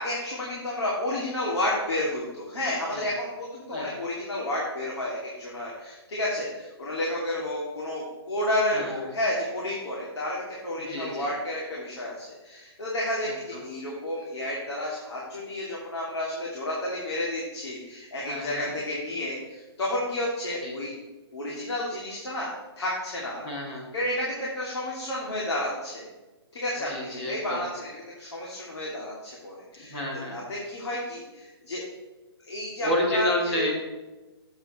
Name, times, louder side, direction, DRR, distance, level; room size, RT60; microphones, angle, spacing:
voice 1, 0.0-21.0 21.3-23.4 23.9-26.0 26.5-27.9 28.2-30.0 30.3-31.8 32.4-33.7, left 1 dB, 80° left, -5 dB, 2.6 m, -31 dB
voice 2, 10.9-11.3 13.2-13.6 18.3-18.7 20.6-20.8 23.4-23.9 26.8-27.6 29.9-30.4 32.8-33.7, left 1 dB, 25° left, -3 dB, 2.1 m, -30 dB
7.8 x 7.0 x 4.3 m, 1.1 s
hypercardioid pair, 170°, 14 cm